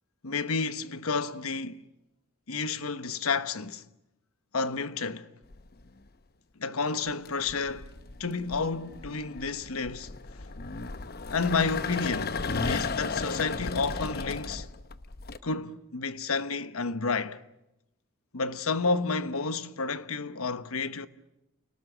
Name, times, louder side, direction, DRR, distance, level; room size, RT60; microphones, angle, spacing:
voice 1, 0.2-1.8 2.5-3.8 4.5-5.3 6.6-7.9 8.2-10.1 11.3-14.7 15.4-17.4 18.3-21.1, left 4 dB, 85° left, 1.1 m, -30 dB
sound 1, 5.5-6.0 7.1-15.4, left 4 dB, 45° left, 0.9 m, -35 dB
29.5 x 19.0 x 9.0 m
head